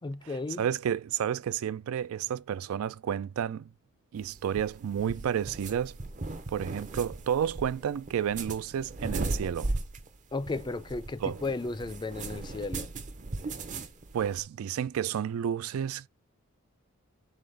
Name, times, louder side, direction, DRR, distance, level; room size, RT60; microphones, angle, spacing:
voice 1, 0.0-0.7 10.3-12.9, left 3 dB, 20° left, 0.4 m, -34 dB
voice 2, 0.6-3.7 4.1-6.0 6.5-9.7 11.2-11.4 14.1-16.1, right 9 dB, 80° right, 0.3 m, -31 dB
sound 1, 4.2-14.4, right 2 dB, 35° right, 0.6 m, -37 dB
3.9 x 3.8 x 3.3 m
head